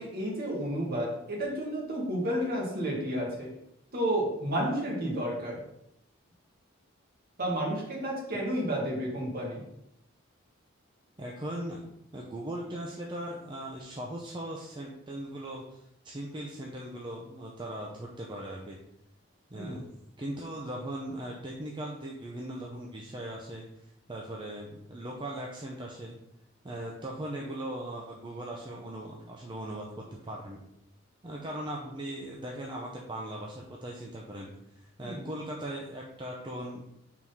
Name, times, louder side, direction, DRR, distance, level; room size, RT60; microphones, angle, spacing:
voice 1, 0.0-3.5 3.9-5.6 7.4-9.7 19.5-19.8 35.0-35.3, equal, 50° right, -2 dB, 1.8 m, -31 dB
voice 2, 11.2-11.8 12.1-15.8 16.0-18.8 19.5-19.9 20.2-23.6 24.1-26.2 26.6-30.6 31.2-36.8, right 1 dB, 25° right, -2 dB, 0.6 m, -39 dB
4.7 x 3.7 x 5.5 m, 0.80 s
head